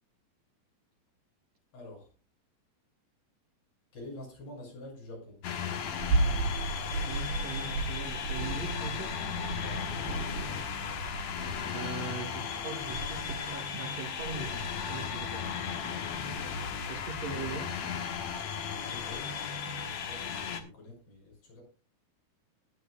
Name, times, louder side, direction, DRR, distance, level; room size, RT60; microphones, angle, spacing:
voice 1, 1.7-2.1 3.9-5.4 9.6-9.9 18.6-19.4 19.8-21.6, left 1 dB, 85° left, 0 dB, 8.1 m, -47 dB
sound 1, 5.4-20.6, left 6 dB, 60° left, 2.3 m, -36 dB
sound 2, 6.0-15.5, right 3 dB, 80° right, 5.1 m, -35 dB
voice 2, 7.1-9.1 11.7-15.5 16.9-17.7, right 4 dB, 55° right, 2 dB, 2.9 m, -41 dB
19.0 x 9.4 x 2.4 m, 0.32 s
omnidirectional pair, 4.2 m